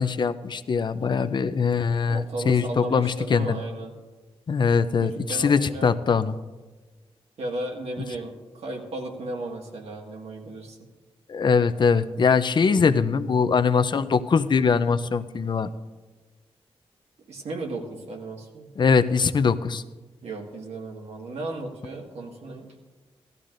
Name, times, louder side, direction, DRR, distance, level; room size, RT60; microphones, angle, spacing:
voice 1, 0.0-3.6 4.5-6.4 11.3-15.7 18.8-19.8, left 5 dB, 45° left, 12 dB, 0.5 m, -22 dB
voice 2, 2.1-3.9 5.0-5.9 7.4-10.8 17.3-18.7 20.2-22.7, right 2 dB, 85° right, 1 dB, 1.8 m, -35 dB
17.5 x 13.5 x 2.5 m, 1.3 s
wide cardioid pair, 130°, 10 cm